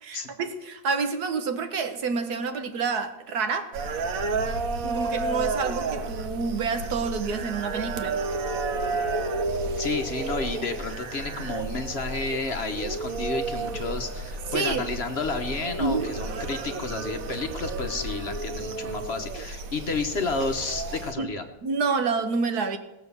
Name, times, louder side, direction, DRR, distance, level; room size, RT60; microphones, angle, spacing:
voice 1, 0.0-3.7 4.8-8.2 9.8-9.9 14.5-14.8 15.8-16.2 21.2-21.3 21.6-22.8, right 4 dB, 80° right, 8 dB, 1.7 m, -28 dB
sound 1, 3.7-21.1, right 3 dB, 65° right, 1.4 m, -31 dB
voice 2, 9.8-21.4, left 3 dB, 45° left, 7 dB, 1.1 m, -31 dB
18.0 x 7.0 x 6.9 m, 1.0 s
omnidirectional pair, 1.6 m